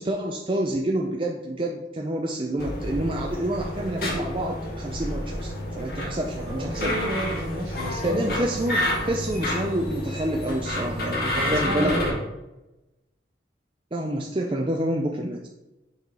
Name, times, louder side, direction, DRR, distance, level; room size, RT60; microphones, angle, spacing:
voice 1, 0.0-7.0 8.0-12.1 13.9-15.5, right 1 dB, 30° right, 1 dB, 0.5 m, -28 dB
sound 1, 2.6-12.1, left 1 dB, 55° left, 1.8 m, -30 dB
voice 2, 6.5-8.4 11.3-12.2, right 1 dB, 65° right, -1 dB, 1.9 m, -30 dB
6.9 x 4.2 x 4.8 m, 0.98 s
head